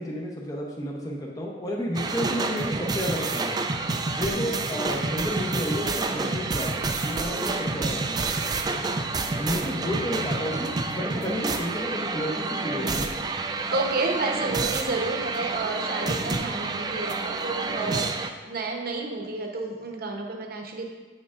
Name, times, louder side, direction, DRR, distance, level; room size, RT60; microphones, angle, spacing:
voice 1, 0.0-3.6 4.1-8.3 9.4-13.1, equal, 20° left, -2 dB, 0.7 m, -31 dB
sound 1, 1.9-18.3, right 3 dB, 20° right, 0.3 m, -29 dB
voice 2, 13.7-18.1 18.4-20.9, right 3 dB, 55° right, 2 dB, 0.8 m, -30 dB
8.4 x 6.5 x 2.4 m, 1.3 s
head